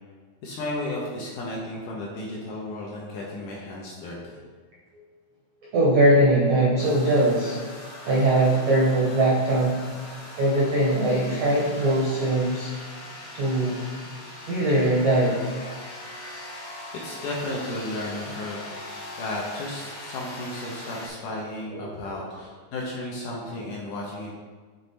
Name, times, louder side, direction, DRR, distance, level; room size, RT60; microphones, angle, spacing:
voice 1, 0.4-4.2 17.0-18.7 19.2-24.4, left 1 dB, 75° left, -4 dB, 1.9 m, -33 dB
voice 2, 5.7-7.6 8.0-9.8 10.4-12.7 13.3-13.9 14.5-15.5 21.8-22.2 23.6-23.7, right 1 dB, 80° right, -6 dB, 1.4 m, -21 dB
sound 1, 6.8-21.1, left 1 dB, 60° left, 1.9 m, -41 dB
7.3 x 3.2 x 4.0 m, 1.5 s
omnidirectional pair, 4.2 m